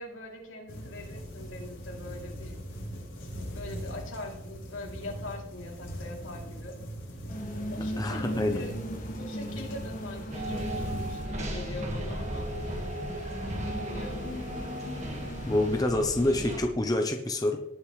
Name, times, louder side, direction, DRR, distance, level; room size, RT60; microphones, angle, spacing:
voice 1, 0.0-2.5 3.4-6.8 7.7-8.7 9.2-12.5 13.7-14.4, left 1 dB, 75° left, -1 dB, 3.2 m, -42 dB
sound 1, 0.7-11.3, equal, 60° left, 4.6 m, -40 dB
sound 2, 7.3-15.8, equal, 40° left, 1.6 m, -38 dB
voice 2, 8.0-8.6 15.5-17.6, left 1 dB, 20° left, 3 dB, 0.8 m, -27 dB
sound 3, 10.3-16.6, right 1 dB, 35° right, 1.8 m, -36 dB
19.0 x 6.9 x 3.3 m, 0.83 s
head